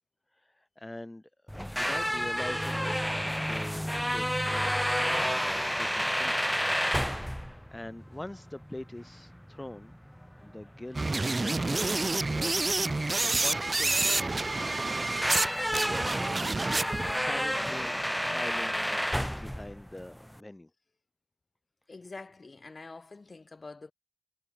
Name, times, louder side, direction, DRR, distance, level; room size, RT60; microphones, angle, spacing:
voice 1, 0.3-3.1 3.4-6.6 7.0-9.9 10.4-12.1 12.4-12.5 12.8-14.5 17.2-18.0 18.3-20.7, left 1 dB, 30° left, 1.9 m, -44 dB
sound 1, 1.5-20.4, equal, 5° left, 1.2 m, -31 dB
sound 2, 10.9-15.5 15.7-17.1, right 2 dB, 55° right, 0.5 m, -28 dB
voice 2, 21.9-23.9, left 3 dB, 70° left, 3.9 m, -46 dB
cardioid pair, 40°, 0 cm